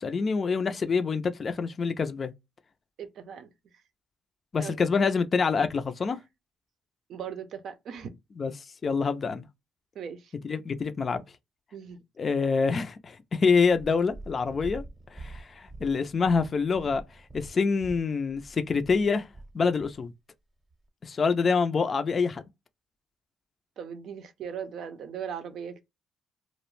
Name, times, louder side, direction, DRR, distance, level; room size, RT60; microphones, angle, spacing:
voice 1, 0.0-2.3 4.5-6.2 8.4-9.5 10.4-11.2 12.2-14.8 15.1-17.0 17.3-19.3 19.5-20.1 21.0-22.4, left 5 dB, 40° left, 0.3 m, -26 dB
voice 2, 3.0-3.5 4.6-4.8 7.1-8.1 9.9-10.3 11.7-12.0 23.8-25.8, right 8 dB, 70° right, 0.5 m, -38 dB
Purr, 13.6-20.0 20.7-20.8, right 2 dB, 20° right, 0.7 m, -45 dB
2.4 x 2.0 x 3.0 m
cardioid pair, 90°, 0 cm